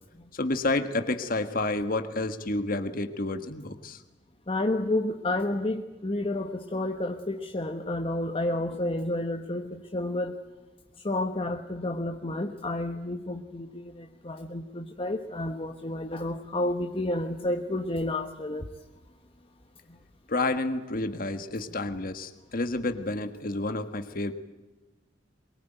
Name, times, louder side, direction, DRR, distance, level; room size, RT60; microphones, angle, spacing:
voice 1, 0.3-4.0 20.3-24.3, left 2 dB, 50° left, 8 dB, 1.6 m, -30 dB
voice 2, 4.5-10.4 11.0-18.7 19.9-20.0, left 1 dB, 30° left, 5 dB, 1.2 m, -30 dB
23.5 x 22.0 x 9.1 m, 1.1 s
head